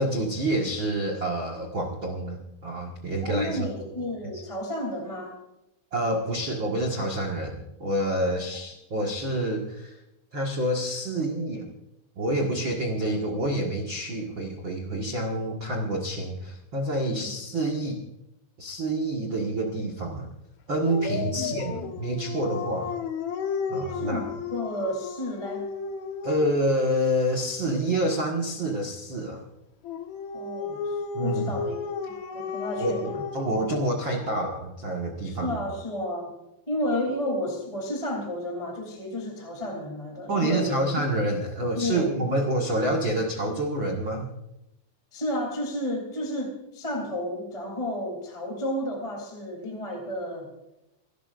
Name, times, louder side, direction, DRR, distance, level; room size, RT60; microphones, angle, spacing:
voice 1, 0.0-3.9 4.3-4.4 5.9-10.0 10.3-11.7 12.2-18.0 18.6-20.3 20.7-22.9 23.7-24.3 26.2-29.4 31.1-31.5 32.8-33.0 33.3-35.6 40.3-44.2, right 1 dB, 80° right, 1 dB, 1.0 m, -28 dB
voice 2, 3.2-5.4 8.3-8.4 17.1-17.3 21.3-21.9 23.9-25.7 30.3-33.2 35.2-36.3 36.7-40.8 41.7-42.1 45.1-50.5, left 1 dB, 10° left, 1 dB, 2.5 m, -32 dB
Dog, 20.8-26.7 29.8-34.4, left 6 dB, 65° left, 1.9 m, -34 dB
29.0 x 13.5 x 2.6 m, 0.87 s
omnidirectional pair, 5.3 m